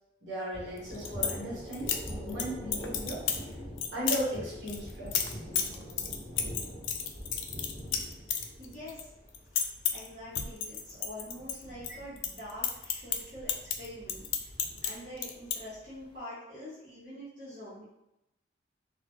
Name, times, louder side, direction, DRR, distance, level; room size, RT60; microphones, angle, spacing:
voice 1, 0.2-3.2 3.9-5.4, right 1 dB, 75° right, -6 dB, 0.8 m, -36 dB
Thunder, 0.5-16.1, equal, 10° left, 0.9 m, -45 dB
sound 1, 0.8-1.4 1.7-2.4 2.7-3.4 3.8-4.2 4.7-9.0 9.3-10.1 10.4-11.9 12.2-14.9 15.2-15.6, left 8 dB, 85° left, 0.3 m, -31 dB
voice 2, 8.6-9.1 9.9-14.5 14.8-17.8, equal, 40° right, -11 dB, 0.7 m, -45 dB
2.1 x 2.1 x 2.9 m, 0.89 s
head